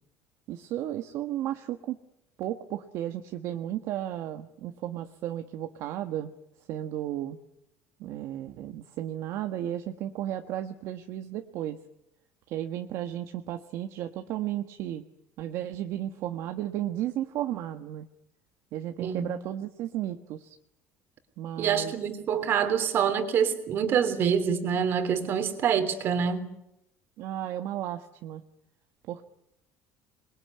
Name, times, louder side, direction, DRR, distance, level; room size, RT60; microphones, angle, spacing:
voice 1, 0.5-2.0 2.4-6.3 6.7-7.4 8.0-11.8 12.5-15.0 15.4-18.1 18.7-20.6 21.4-21.9 27.2-28.4 29.1-29.2, right 12 dB, 55° right, 1.5 m, -34 dB
voice 2, 19.0-19.3 21.6-26.5, right 7 dB, 40° right, 3.2 m, -26 dB
27.0 x 22.0 x 9.7 m
cardioid pair, 175°, 6 cm